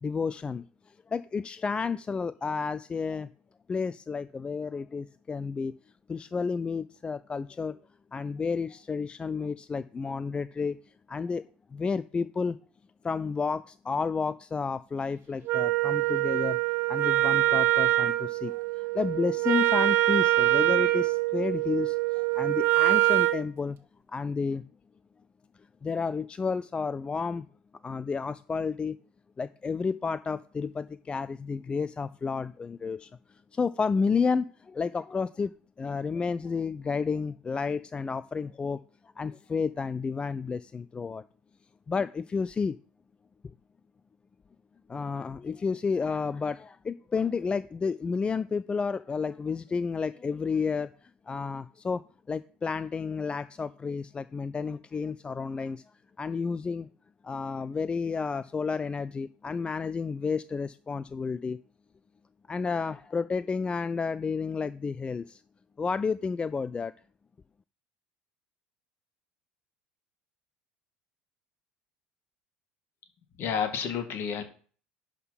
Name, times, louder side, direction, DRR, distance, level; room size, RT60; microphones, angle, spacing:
voice 1, 0.0-3.3 3.7-5.7 6.1-7.8 8.1-10.8 11.1-11.4 11.7-12.6 13.0-16.6 16.9-23.8 24.1-24.7 25.8-27.5 27.8-29.0 29.4-33.1 33.5-35.5 35.8-38.8 39.2-41.2 41.9-42.8 43.4-43.5 44.9-52.0 52.3-55.8 56.2-56.9 57.2-61.6 62.5-65.4 65.8-66.9, left 5 dB, 20° left, 15 dB, 0.3 m, -31 dB
Wind instrument woodwind instrument, 15.5-23.4, right 17 dB, 45° right, 1.0 m, -24 dB
voice 2, 73.4-74.4, left 7 dB, 45° left, 7 dB, 1.7 m, -30 dB
11.0 x 3.7 x 5.8 m, 0.42 s
figure-of-eight pair, 70°, 5 cm